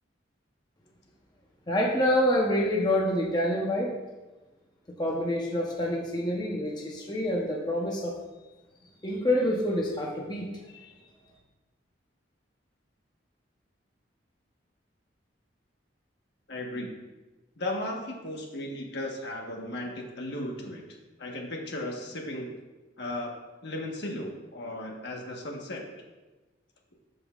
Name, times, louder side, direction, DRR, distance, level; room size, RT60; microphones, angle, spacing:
voice 1, 1.7-3.9 5.0-8.1 9.0-10.5 10.7-10.9, left 1 dB, 25° left, -2 dB, 0.9 m, -27 dB
voice 2, 16.5-16.9 17.6-20.8 21.2-22.5 23.0-23.3 23.6-25.8, left 1 dB, 65° left, 0 dB, 1.3 m, -35 dB
13.5 x 5.3 x 2.5 m, 1.1 s
head